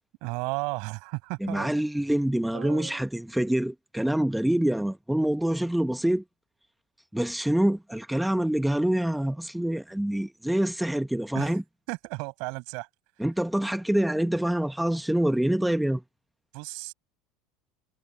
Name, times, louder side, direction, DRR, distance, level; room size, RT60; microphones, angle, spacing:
voice 1, 0.2-1.7 2.5-3.0 11.3-11.6 11.9-12.9 16.5-16.9, right 30 dB, 70° right, 6.6 m, -34 dB
voice 2, 1.4-6.2 7.1-11.6 13.2-16.0, right 1 dB, 5° right, 0.9 m, -26 dB
supercardioid pair, 115°, 0 cm